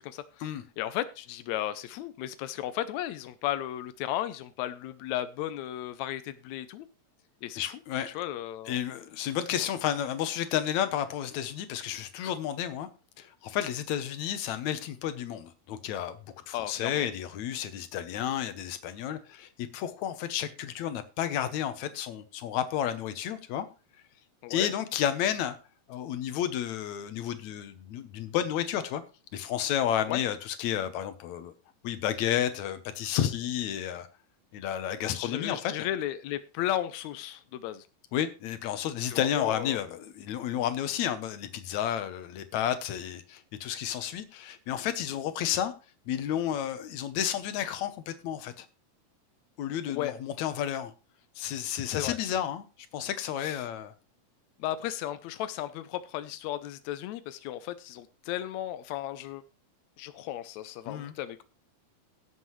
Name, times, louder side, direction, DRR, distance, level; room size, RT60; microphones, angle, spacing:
voice 1, 0.8-6.9 7.4-7.8 8.1-8.8 16.5-17.1 24.4-24.7 30.1-30.2 35.1-37.8 39.1-39.8 49.9-50.1 51.9-52.2 53.4-53.6 54.6-59.4 60.0-61.4, left 12 dB, 85° left, 1.6 m, -35 dB
voice 2, 7.6-8.1 8.7-12.9 13.2-16.2 16.5-23.7 24.5-25.6 25.9-29.0 29.3-31.5 31.8-34.1 34.5-35.9 38.1-45.7 46.1-48.7 49.6-50.9 51.4-52.7 52.9-53.9 60.9-61.1, left 10 dB, 65° left, 2.0 m, -31 dB
17.0 x 7.6 x 3.1 m
omnidirectional pair, 4.1 m